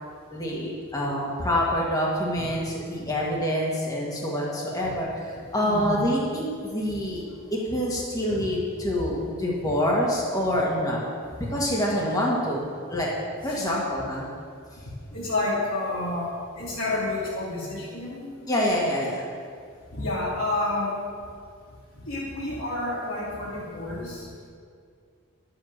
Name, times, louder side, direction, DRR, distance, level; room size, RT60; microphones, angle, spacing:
voice 1, 0.3-11.0 11.5-13.1 13.4-14.3 18.5-19.3, equal, 20° left, -4 dB, 2.0 m, -26 dB
voice 2, 5.6-6.0 8.3-8.4 8.9-9.1 9.6-9.7 13.4-13.7 15.1-16.3 16.6-18.3 19.9-21.0 22.1-24.3, left 2 dB, 75° left, -8 dB, 2.8 m, -30 dB
11.5 x 7.7 x 7.6 m, 2.2 s
head